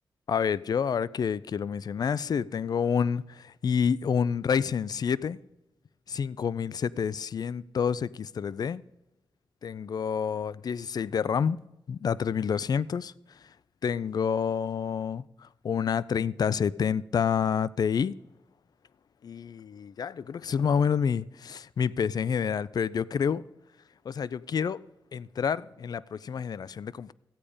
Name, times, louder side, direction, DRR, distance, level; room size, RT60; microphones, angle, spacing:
voice 1, 0.3-5.4 6.1-8.8 9.6-11.6 11.9-13.5 13.8-18.1 19.2-23.4 24.0-24.8 25.1-27.1, left 7 dB, 55° left, 0.3 m, -28 dB
14.5 x 8.6 x 4.9 m
cardioid pair, 85°, 8 cm